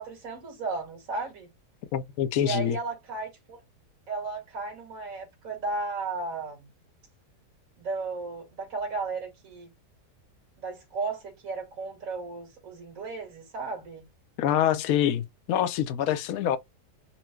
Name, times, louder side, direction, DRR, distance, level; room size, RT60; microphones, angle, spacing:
voice 1, 0.0-1.5 2.3-3.6 4.1-6.7 7.8-9.7 10.6-14.1, right 3 dB, 55° right, 2.1 m, -34 dB
voice 2, 1.9-2.8 14.4-16.6, left 10 dB, 65° left, 0.9 m, -25 dB
4.3 x 2.2 x 4.3 m
omnidirectional pair, 1.8 m